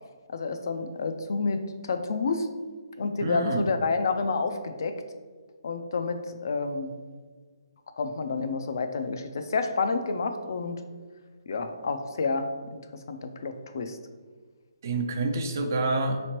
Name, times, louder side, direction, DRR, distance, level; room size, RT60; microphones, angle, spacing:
voice 1, 0.3-2.5 3.0-5.0 5.6-6.9 8.0-10.8 11.5-12.5 13.1-14.0, left 4 dB, 50° left, 7 dB, 0.4 m, -29 dB
voice 2, 3.2-3.8 14.8-16.2, right 2 dB, 40° right, 5 dB, 0.4 m, -28 dB
5.0 x 3.1 x 2.9 m, 1.5 s
hypercardioid pair, 170°, 2 cm